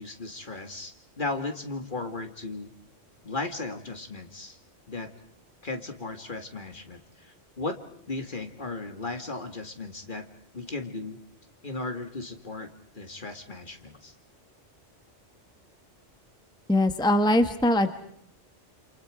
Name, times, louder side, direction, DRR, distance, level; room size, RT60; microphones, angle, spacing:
voice 1, 0.0-2.7 3.2-4.6 4.9-5.1 5.6-7.8 8.1-10.3 10.5-11.2 11.6-14.1, left 3 dB, 45° left, 7 dB, 2.2 m, -36 dB
voice 2, 16.7-17.9, left 1 dB, 5° left, 9 dB, 1.1 m, -21 dB
28.5 x 27.5 x 5.0 m, 0.66 s
omnidirectional pair, 1.3 m